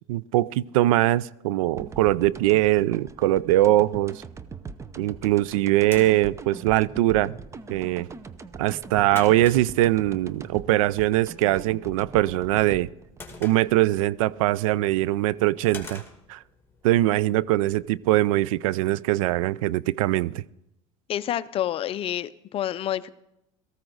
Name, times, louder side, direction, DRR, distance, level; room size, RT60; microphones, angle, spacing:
voice 1, 0.1-4.2 5.0-7.3 7.7-8.1 8.6-12.9 13.4-16.0 16.3-16.4 16.8-20.4, right 15 dB, 85° right, 0.4 m, -22 dB
sound 1, 1.8-14.6, right 4 dB, 15° right, 0.6 m, -42 dB
sound 2, 5.1-18.2, left 4 dB, 15° left, 2.3 m, -48 dB
voice 2, 21.1-23.1, left 11 dB, 35° left, 0.5 m, -28 dB
17.5 x 14.5 x 4.0 m
supercardioid pair, 125°, 17 cm